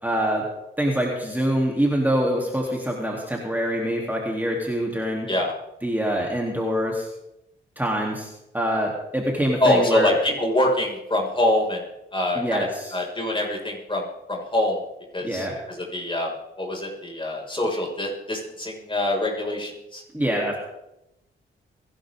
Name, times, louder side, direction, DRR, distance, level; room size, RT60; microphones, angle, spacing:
voice 1, 0.0-0.4 0.8-5.3 5.8-7.1 7.8-8.3 8.5-10.2 12.4-13.0 15.2-15.6 20.1-20.6, equal, 10° right, -2 dB, 3.5 m, -25 dB
voice 2, 9.6-11.8 12.1-14.8 15.1-16.3 16.6-20.0, left 1 dB, 25° left, -1 dB, 6.1 m, -25 dB
22.5 x 12.0 x 3.9 m, 0.88 s
cardioid pair, 65°, 21 cm